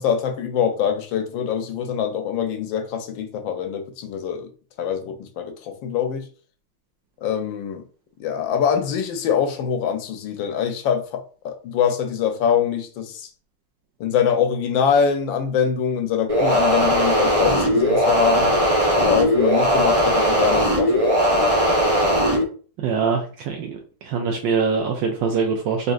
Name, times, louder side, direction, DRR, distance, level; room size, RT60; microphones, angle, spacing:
voice 1, 0.0-4.5 4.8-6.3 7.2-7.8 8.2-13.3 14.0-18.5 18.9-21.5, left 7 dB, 75° left, 1.3 m, -24 dB
sound 1, 16.3-22.4, equal, 55° right, 0.3 m, -19 dB
voice 2, 22.8-23.8 24.0-25.9, right 5 dB, 75° right, 1.2 m, -23 dB
4.0 x 3.3 x 2.4 m
omnidirectional pair, 2.2 m